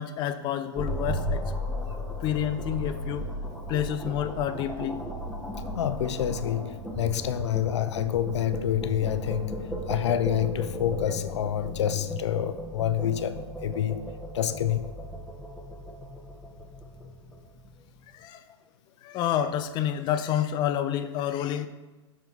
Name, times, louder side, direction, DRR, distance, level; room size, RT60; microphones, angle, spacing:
voice 1, 0.0-1.4 2.2-3.3 3.7-5.0 18.1-18.4 19.0-21.7, left 10 dB, 30° left, 9 dB, 0.6 m, -29 dB
sound 1, 0.8-18.0, equal, ahead, 1.1 m, -36 dB
voice 2, 5.7-14.0 14.3-14.9, left 11 dB, 75° left, 13 dB, 0.5 m, -28 dB
8.0 x 5.3 x 4.6 m, 1.2 s
hypercardioid pair, 130°, 15 cm